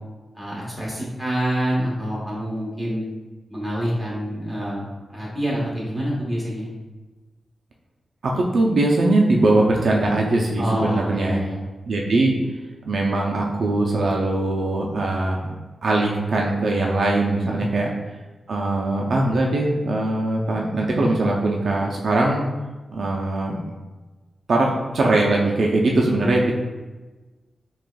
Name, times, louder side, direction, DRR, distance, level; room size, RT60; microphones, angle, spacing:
voice 1, 0.3-3.0 3.5-6.7 10.6-11.6 17.4-17.7, equal, ahead, -6 dB, 1.1 m, -26 dB
voice 2, 8.2-11.4 11.9-12.3 12.8-15.4 15.8-17.9 18.5-22.5 22.9-23.6 24.5-26.5, right 2 dB, 60° right, -1 dB, 0.4 m, -21 dB
5.9 x 2.3 x 2.2 m, 1.2 s
wide cardioid pair, 155°, 0 cm